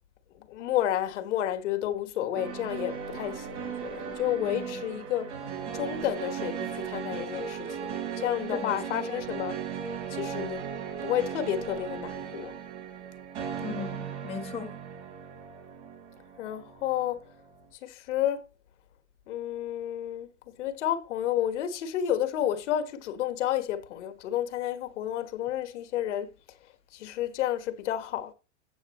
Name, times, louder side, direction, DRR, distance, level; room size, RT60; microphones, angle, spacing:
voice 1, 0.3-5.4 5.7-9.6 10.1-10.7 11.0-12.6 16.4-17.2 17.8-18.4 19.3-26.3 26.9-28.3, left 11 dB, 75° left, 1.5 m, -31 dB
sound 1, 2.3-17.6, right 7 dB, 70° right, 4.5 m, -37 dB
voice 2, 4.4-4.7 8.5-9.0 13.6-14.8, left 5 dB, 15° left, 0.9 m, -37 dB
8.3 x 7.8 x 3.0 m
supercardioid pair, 140°, 36 cm